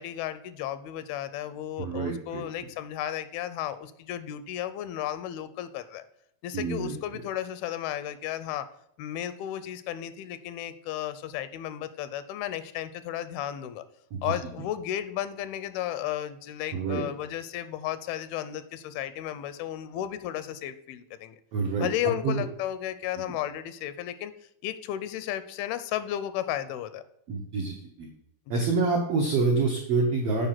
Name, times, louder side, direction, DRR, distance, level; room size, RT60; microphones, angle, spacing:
voice 1, 0.0-6.1 6.4-8.7 9.0-13.8 14.2-21.4 21.8-24.3 24.6-27.0 28.6-28.7, left 12 dB, 85° left, 13 dB, 2.5 m, -34 dB
voice 2, 1.8-2.4 6.5-6.9 14.1-14.3 16.7-17.0 21.5-21.9 22.2-22.4 27.3-28.1 28.5-30.5, right 4 dB, 80° right, -1 dB, 1.4 m, -27 dB
7.8 x 5.2 x 5.8 m, 0.74 s
omnidirectional pair, 4.3 m